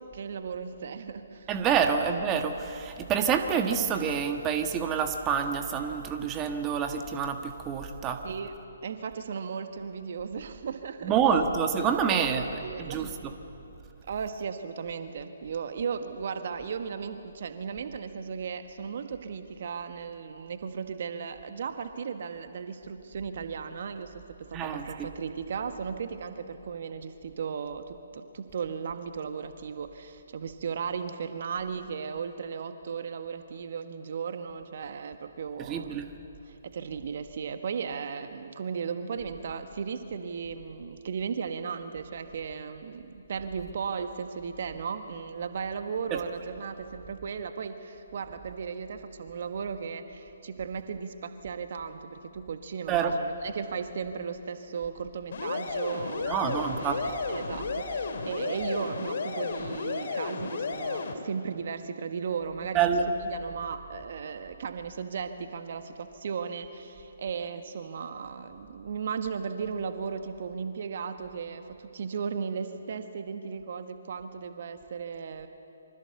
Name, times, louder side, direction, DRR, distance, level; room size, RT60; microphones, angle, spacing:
voice 1, 0.0-1.5 8.2-8.5 8.8-11.1 11.7-13.1 14.1-36.0 36.4-56.5 56.8-62.8 63.1-75.5, right 6 dB, 50° right, 8 dB, 1.5 m, -36 dB
voice 2, 1.5-8.2 11.0-12.6 12.9-13.1 24.5-24.8 35.7-36.1 52.9-53.1 56.3-57.0 62.7-63.0, right 7 dB, 20° right, 5 dB, 1.5 m, -27 dB
sound 1, 55.3-61.1, left 4 dB, 55° left, 2.9 m, -33 dB
26.5 x 25.0 x 7.0 m, 2.9 s
figure-of-eight pair, 135°, 0 cm